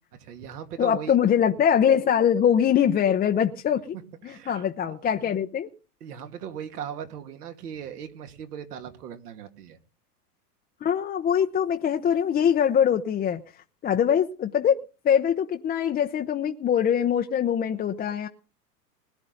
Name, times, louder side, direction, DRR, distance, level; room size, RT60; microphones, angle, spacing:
voice 1, 0.2-1.1 4.2-5.4 6.0-9.8, right 8 dB, 70° right, 2.3 m, -39 dB
voice 2, 0.8-3.9 4.2-5.7 10.8-13.4 13.8-18.3, left 8 dB, 20° left, 0.7 m, -23 dB
20.5 x 10.5 x 3.9 m
hypercardioid pair, 110°, 47 cm